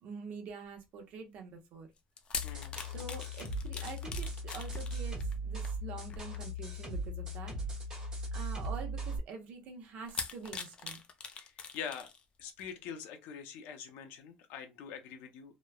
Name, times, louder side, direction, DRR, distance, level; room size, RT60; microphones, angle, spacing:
voice 1, 0.0-1.9 2.9-7.5 8.3-11.0, right 5 dB, 55° right, 0.7 m, -46 dB
sound 1, 2.0-6.8 7.5-7.7 8.6-8.7 10.1-12.2 12.6-12.7, left 5 dB, 30° left, 0.4 m, -43 dB
sound 2, 2.3-9.2, equal, 25° right, 1.2 m, -38 dB
voice 2, 2.4-2.8 7.9-8.0 11.3-12.1 12.4-15.6, left 7 dB, 75° left, 0.6 m, -44 dB
3.0 x 2.1 x 2.3 m
cardioid pair, 150°, 3 cm